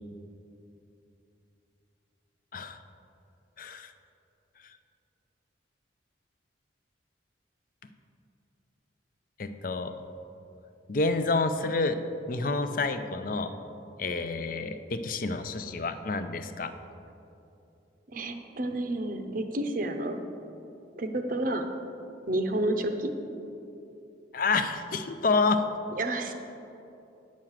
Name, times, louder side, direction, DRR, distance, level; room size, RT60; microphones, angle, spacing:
voice 1, 3.6-3.9 9.4-9.9 10.9-12.0 12.3-13.5 14.0-16.7 24.3-25.6, left 3 dB, 50° left, 9 dB, 0.5 m, -28 dB
voice 2, 18.1-20.2 21.0-21.6 22.3-23.1 26.0-26.3, right 1 dB, 45° right, 6 dB, 0.7 m, -30 dB
8.8 x 6.3 x 7.3 m, 2.8 s
head